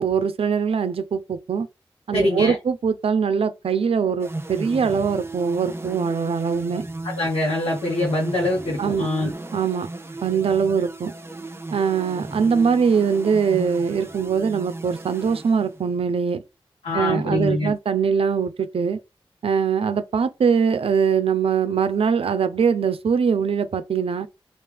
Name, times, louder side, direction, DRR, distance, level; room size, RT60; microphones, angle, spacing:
voice 1, 0.0-1.7 2.1-6.9 8.8-9.1 9.5-9.9 10.2-11.1 11.7-16.4 16.9-19.0 19.4-24.3, right 6 dB, 75° right, 0.4 m, -22 dB
voice 2, 2.1-2.6 7.0-9.3 16.8-17.7, left 2 dB, 85° left, 1.0 m, -24 dB
sound 1, 4.2-16.1, right 2 dB, 25° right, 0.5 m, -36 dB
3.3 x 2.5 x 3.3 m
cardioid pair, 50°, 10 cm